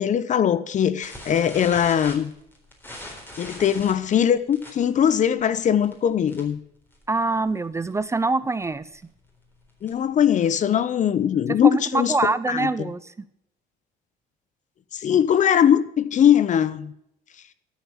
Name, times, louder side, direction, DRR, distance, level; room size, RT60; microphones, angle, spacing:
voice 1, 0.0-2.3 3.4-6.6 9.8-12.1 12.5-12.9 14.9-16.9, left 9 dB, 45° left, 0.9 m, -21 dB
sound 1, 1.0-6.7 6.9-7.2 7.5-7.6 7.9-8.1 8.6-10.2, left 1 dB, 10° left, 3.9 m, -41 dB
voice 2, 7.1-9.0 11.6-13.1, right 3 dB, 15° right, 0.5 m, -24 dB
13.0 x 7.3 x 8.7 m
cardioid pair, 110°, 17 cm